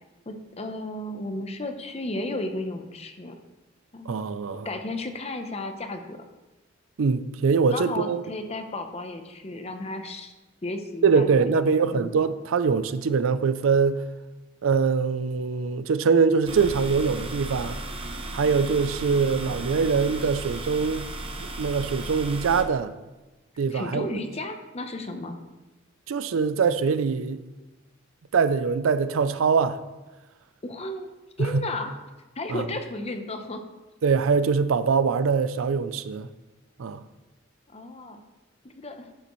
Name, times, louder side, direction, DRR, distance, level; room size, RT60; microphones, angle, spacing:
voice 1, 0.3-3.3 3.9-4.1 4.6-6.2 7.7-10.3 10.6-12.1 23.7-25.4 30.6-31.1 31.4-31.9 32.4-33.6 37.7-38.2 38.6-39.1, left 2 dB, 30° left, 0.7 m, -34 dB
voice 2, 4.1-4.7 7.0-8.2 11.0-14.0 14.6-17.8 18.3-21.1 21.6-22.9 23.6-24.1 26.1-27.4 28.3-29.8 31.4-31.6 32.5-32.7 34.0-36.3 36.8-37.0, right 5 dB, 80° right, 0.4 m, -23 dB
sound 1, 16.5-22.6, right 2 dB, 30° right, 0.8 m, -35 dB
11.5 x 6.7 x 3.1 m
head